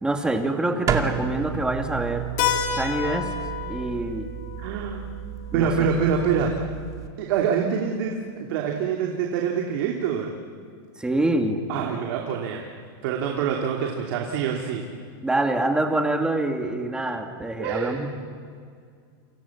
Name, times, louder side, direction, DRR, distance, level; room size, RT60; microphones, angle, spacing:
voice 1, 0.0-2.3 2.8-3.3 3.7-4.3 5.5-5.7 11.0-11.6 15.2-18.1, right 2 dB, 5° right, 4 dB, 2.5 m, -25 dB
sound 1, 0.9-7.1, right 8 dB, 25° right, 2.4 m, -32 dB
Keyboard (musical), 2.4-6.8, left 9 dB, 55° left, 3.6 m, -31 dB
voice 2, 4.6-5.1 5.5-6.7 7.2-10.3 11.7-12.6 13.0-14.9 17.6-18.0, right 7 dB, 65° right, 1 dB, 3.0 m, -25 dB
29.0 x 27.0 x 7.4 m, 2.1 s
supercardioid pair, 145°, 13 cm